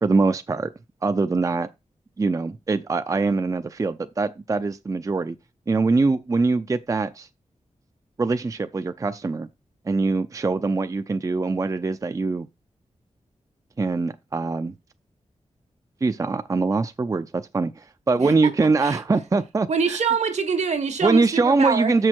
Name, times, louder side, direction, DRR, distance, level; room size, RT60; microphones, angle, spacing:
voice 1, 0.0-0.7 1.0-1.7 2.2-5.4 5.7-7.3 8.2-9.5 9.9-12.5 13.8-14.7 16.0-20.0 21.0-22.1, right 3 dB, 30° right, 0.4 m, -23 dB
voice 2, 19.7-22.1, right 5 dB, 75° right, 1.4 m, -25 dB
6.7 x 6.3 x 4.4 m
wide cardioid pair, 110°, 12 cm